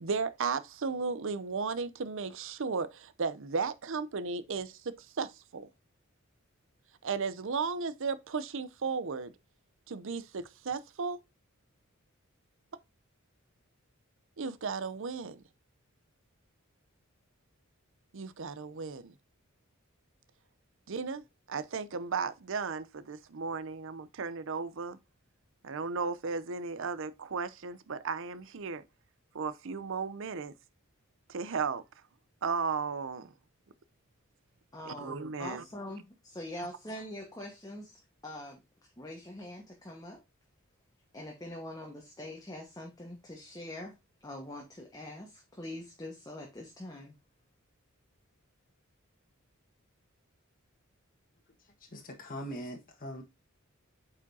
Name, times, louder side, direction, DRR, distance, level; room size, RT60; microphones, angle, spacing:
voice 1, 0.0-5.7 7.0-9.3 9.9-11.2 14.4-15.4 18.1-19.1 20.9-25.0 25.6-28.8 29.3-30.5 31.3-31.8 32.4-33.3 34.9-35.6, right 5 dB, 65° right, 0.6 m, -35 dB
voice 2, 34.7-38.6 39.0-40.2 41.1-44.0 44.2-47.1, left 1 dB, 20° left, 1.3 m, -44 dB
voice 3, 51.9-53.2, equal, 40° left, 1.4 m, -41 dB
8.5 x 5.0 x 2.7 m
head